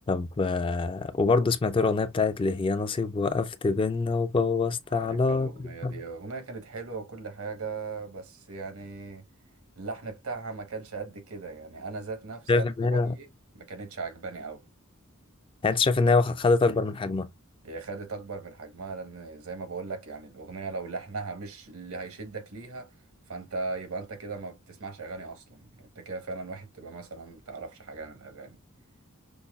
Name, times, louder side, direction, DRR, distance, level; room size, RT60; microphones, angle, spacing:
voice 1, 0.1-5.5 5.8-5.9 12.5-13.1 15.6-17.3, left 3 dB, 25° left, 0.4 m, -25 dB
voice 2, 4.9-9.2 9.7-12.7 12.9-13.3 13.5-14.6 17.6-22.9 23.3-28.6, right 4 dB, 85° right, 1.1 m, -38 dB
5.3 x 2.2 x 2.3 m
head